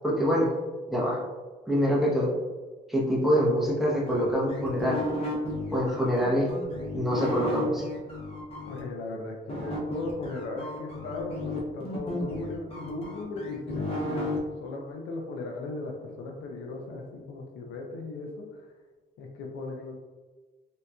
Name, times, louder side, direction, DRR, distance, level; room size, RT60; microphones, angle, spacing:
voice 1, 0.0-0.5 0.9-1.2 1.7-2.3 2.9-5.0 5.7-6.5 6.9-7.8, equal, ahead, -5 dB, 0.8 m, -25 dB
sound 1, 4.1-8.8 9.5-14.4, left 1 dB, 30° left, 0.9 m, -34 dB
voice 2, 8.7-14.3 14.6-18.5 19.2-19.9, left 3 dB, 90° left, 1 dB, 0.6 m, -37 dB
3.6 x 2.8 x 2.2 m, 1.3 s
cardioid pair, 90°, 20 cm